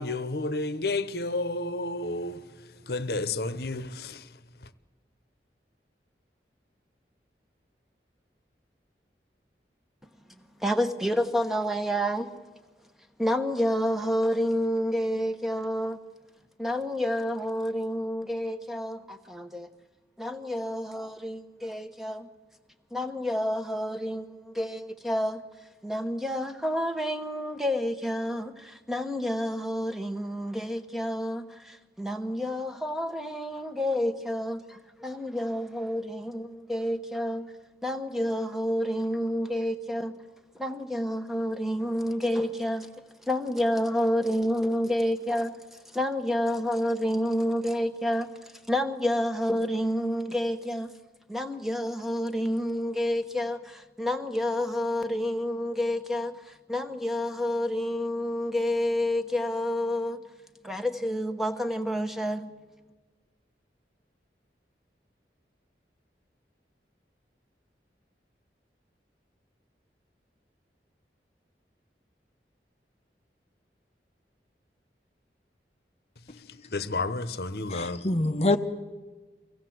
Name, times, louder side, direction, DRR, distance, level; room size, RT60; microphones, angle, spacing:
voice 1, 0.0-2.4 2.9-4.2 76.7-78.0, left 2 dB, 65° left, 1.0 m, -31 dB
voice 2, 10.6-12.4 13.2-16.0 16.6-19.7 20.2-22.3 22.9-25.4 25.8-37.5 37.8-40.1 40.5-42.9 43.3-45.6 45.9-50.9 51.3-60.2 60.6-62.5, equal, ahead, 1.0 m, -29 dB
voice 3, 77.7-78.6, left 2 dB, 35° left, 0.8 m, -25 dB
24.0 x 17.0 x 7.8 m
head